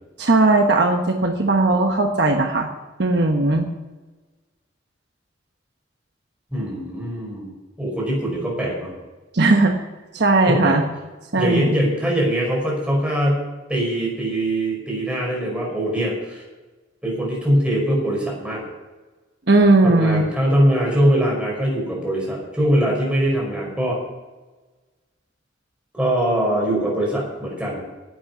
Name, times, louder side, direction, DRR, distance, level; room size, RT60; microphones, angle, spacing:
voice 1, 0.2-2.7 3.0-3.7 9.3-9.8 10.1-10.8 11.3-11.7 19.5-20.2, right 2 dB, 60° right, 4 dB, 1.2 m, -17 dB
voice 2, 6.5-7.5 7.8-8.9 10.5-10.8 11.4-13.4 13.7-16.4 17.0-18.6 19.8-24.0 25.9-27.8, right 1 dB, 5° right, -3 dB, 5.4 m, -22 dB
11.5 x 8.8 x 9.2 m, 1.2 s
head